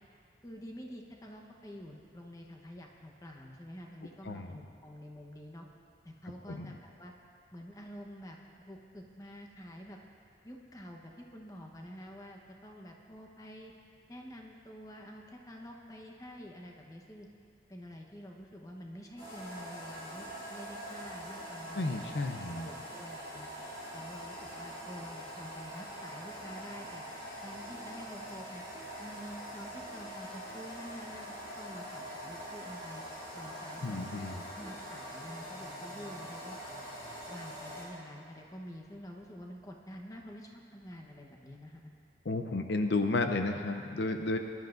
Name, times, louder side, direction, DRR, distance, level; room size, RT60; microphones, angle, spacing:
voice 1, 0.4-5.7 6.0-7.1 7.5-10.0 10.4-13.7 14.1-17.3 17.7-22.1 22.4-23.5 23.9-27.0 27.4-28.6 29.0-33.0 33.3-34.2 34.5-36.6 37.3-41.9, equal, 20° left, 0 dB, 1.0 m, -48 dB
voice 2, 4.2-4.6 6.5-6.7 21.7-22.7 33.8-34.5 42.3-44.4, left 2 dB, 75° left, 5 dB, 0.6 m, -32 dB
sound 1, 19.2-37.8, equal, 35° left, 3.5 m, -44 dB
20.5 x 11.5 x 2.6 m, 2.5 s
head